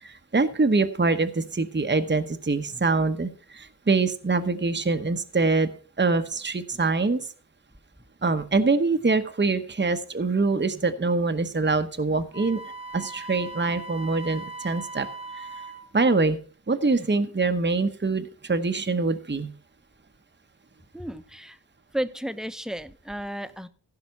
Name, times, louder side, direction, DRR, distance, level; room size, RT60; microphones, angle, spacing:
voice 1, 0.0-5.7 6.0-7.3 8.2-12.6 12.9-15.1 15.3-15.5 15.9-16.4 16.7-19.5, right 3 dB, 30° right, 9 dB, 1.0 m, -24 dB
Wind instrument woodwind instrument, 12.3-15.9, right 3 dB, 40° left, 2.5 m, -39 dB
voice 2, 20.9-21.6 21.9-23.7, right 1 dB, ahead, 11 dB, 0.9 m, -33 dB
15.5 x 5.9 x 5.8 m, 0.39 s
wide cardioid pair, 75°, 39 cm